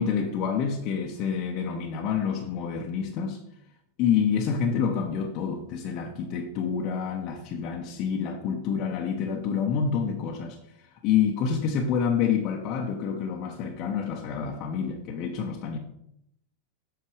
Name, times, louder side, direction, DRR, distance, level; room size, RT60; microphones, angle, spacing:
voice 1, 0.0-3.4 4.0-10.6 11.0-15.8, left 7 dB, 40° left, 0.9 m, -27 dB
8.2 x 5.7 x 4.8 m
figure-of-eight pair, 90°, 0 cm